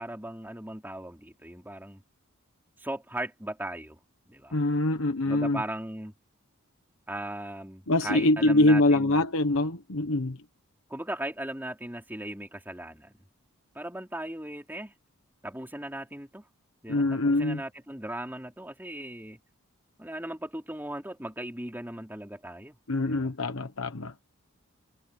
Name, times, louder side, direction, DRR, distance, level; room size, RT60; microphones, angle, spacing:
voice 1, 0.0-2.0 2.8-4.0 4.3-4.6 5.2-6.1 7.1-9.2 10.9-13.1 13.7-14.9 15.4-16.4 16.8-19.4 20.0-22.8 23.0-23.3, right 1 dB, 10° right, 4.4 m, -38 dB
voice 2, 4.5-5.6 7.9-10.4 16.9-17.6 22.9-24.1, left 2 dB, 70° left, 1.2 m, -24 dB
head